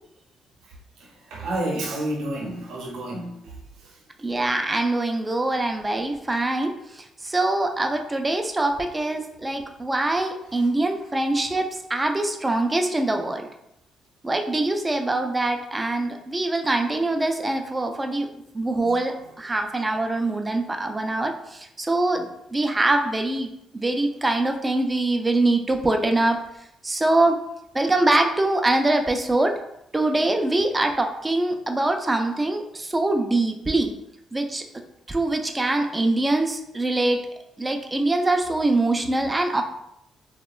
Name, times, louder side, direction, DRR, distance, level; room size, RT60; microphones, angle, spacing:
voice 1, 1.0-3.5, right 1 dB, 85° right, -2 dB, 0.6 m, -30 dB
voice 2, 4.2-13.5 14.2-18.3 18.5-26.4 26.8-27.4 27.7-29.6 29.9-33.9 34.3-34.6 35.1-37.2 37.6-39.6, right 2 dB, 20° right, 4 dB, 0.3 m, -23 dB
2.8 x 2.1 x 2.3 m, 0.80 s
cardioid pair, 90°, 0 cm